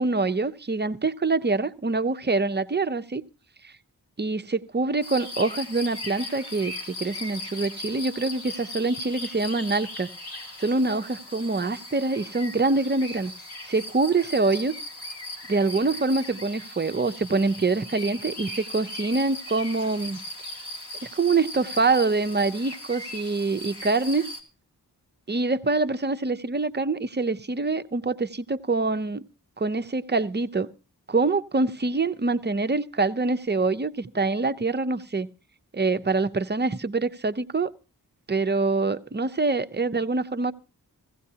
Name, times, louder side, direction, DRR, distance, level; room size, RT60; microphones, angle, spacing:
voice 1, 0.0-3.2 3.6-3.7 4.2-10.1 10.6-13.3 13.7-14.7 15.5-20.2 21.2-24.3 25.3-29.2 29.6-30.7 31.1-35.3 35.7-37.7 38.3-40.5, right 3 dB, 25° right, 0.6 m, -25 dB
sound 1, 5.0-24.4, left 1 dB, 80° left, 2.1 m, -38 dB
16.0 x 15.5 x 2.8 m
cardioid pair, 50°, 39 cm